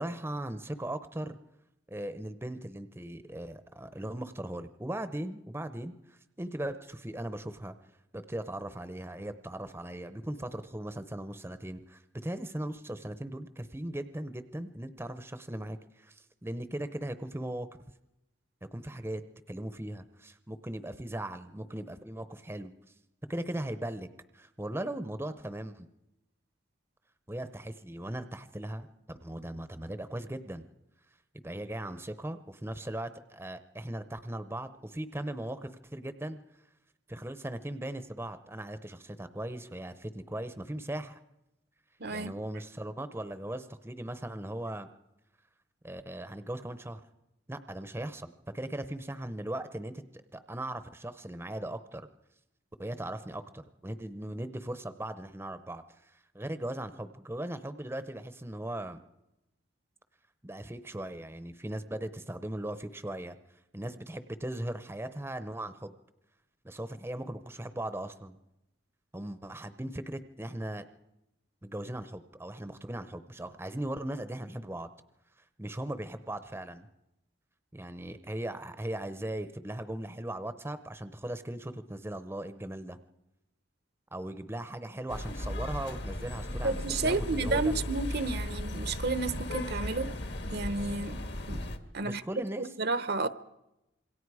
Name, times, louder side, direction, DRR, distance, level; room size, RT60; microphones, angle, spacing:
voice 1, 0.0-1.4 1.9-7.7 8.1-17.7 18.7-19.2 19.5-22.7 23.3-24.1 24.3-25.9 27.3-30.7 31.4-36.4 37.1-41.2 42.1-44.9 45.8-47.0 47.5-52.1 52.8-59.0 60.4-63.4 63.7-65.9 66.6-68.4 69.1-70.8 71.6-74.9 75.6-76.9 77.7-83.0 84.1-87.9 92.0-92.7, right 1 dB, 10° right, 0.7 m, -38 dB
voice 2, 42.0-42.3 86.6-90.1 90.5-91.6 91.9-92.2 92.6-93.3, right 3 dB, 55° right, 0.8 m, -31 dB
sound 1, 85.1-91.8, left 1 dB, 60° left, 1.6 m, -36 dB
26.5 x 23.0 x 4.8 m
head